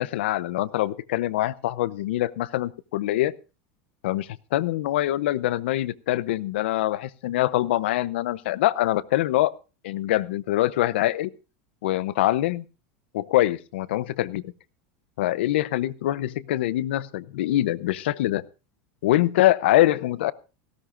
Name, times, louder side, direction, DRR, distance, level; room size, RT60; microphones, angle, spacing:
voice 1, 0.0-3.3 4.0-9.5 9.8-11.3 11.8-12.6 13.1-14.5 15.2-18.4 19.0-20.3, left 15 dB, 85° left, 18 dB, 0.7 m, -24 dB
18.0 x 16.0 x 2.5 m, 0.32 s
supercardioid pair, 175°, 6 cm